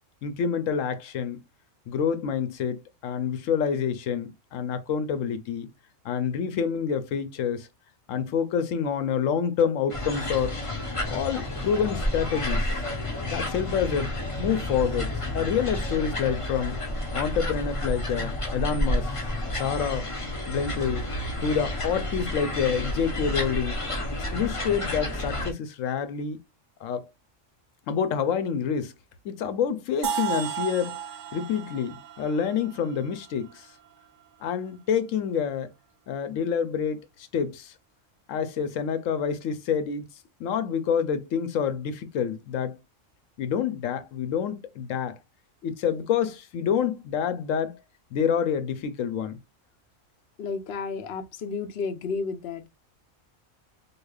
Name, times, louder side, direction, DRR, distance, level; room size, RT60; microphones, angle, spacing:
voice 1, 0.2-1.4 1.9-5.7 6.0-7.7 8.1-10.6 11.1-12.7 13.3-16.8 17.1-19.1 19.5-20.1 20.5-21.1 21.4-23.8 24.2-26.4 26.8-27.0 27.9-28.9 29.2-30.9 31.3-33.7 34.4-35.7 36.1-37.7 38.3-40.0 40.4-42.8 43.4-45.2 45.6-47.8 48.1-49.4, left 7 dB, 85° left, 1.0 m, -27 dB
sound 1, 9.9-25.5, left 1 dB, 25° left, 1.0 m, -30 dB
sound 2, 30.0-33.9, right 8 dB, 70° right, 0.9 m, -34 dB
voice 2, 50.4-52.7, left 5 dB, 60° left, 0.8 m, -32 dB
4.9 x 2.5 x 2.3 m
omnidirectional pair, 1.3 m